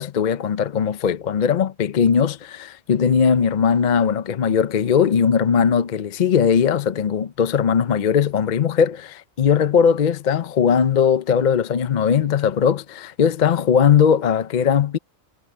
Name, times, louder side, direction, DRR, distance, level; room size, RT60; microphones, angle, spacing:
voice 1, 0.0-15.0, left 7 dB, 45° left, 0.7 m, -19 dB
omnidirectional pair, 1.3 m